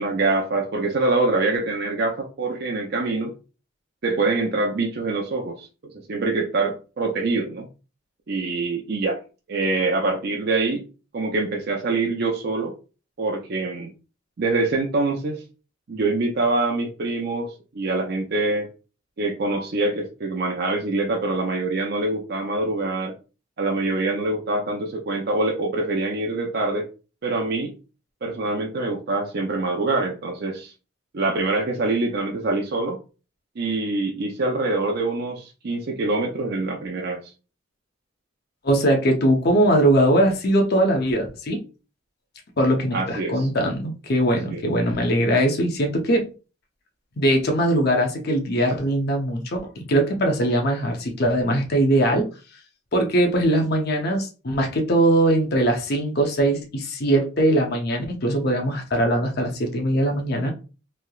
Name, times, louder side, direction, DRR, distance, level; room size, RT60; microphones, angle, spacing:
voice 1, 0.0-3.3 4.0-5.7 5.9-7.7 8.3-9.2 9.5-10.8 11.1-12.7 13.2-13.9 14.4-15.4 15.9-18.7 19.2-23.2 23.6-26.9 27.2-27.7 28.2-30.7 31.1-33.0 33.6-37.3 42.9-43.5 44.5-44.6, right 2 dB, 55° right, 0.5 m, -25 dB
voice 2, 38.6-41.6 42.6-46.3 47.2-52.3 52.9-60.5, right 1 dB, 55° left, 0.7 m, -21 dB
3.2 x 2.8 x 2.3 m
head